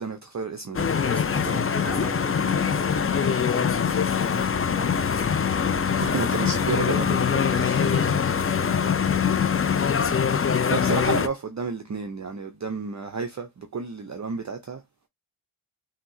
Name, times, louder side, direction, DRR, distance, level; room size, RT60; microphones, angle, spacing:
voice 1, 0.0-0.9 1.4-1.6 6.0-7.9 10.0-10.2 10.7-14.8, right 5 dB, 35° right, 0.6 m, -32 dB
sound 1, 0.7-11.3, left 7 dB, 30° left, 0.4 m, -23 dB
voice 2, 0.9-5.4 6.5-8.8 9.4-9.8, right 1 dB, 5° left, 2.2 m, -40 dB
5.8 x 2.8 x 2.7 m
wide cardioid pair, 95°, 48 cm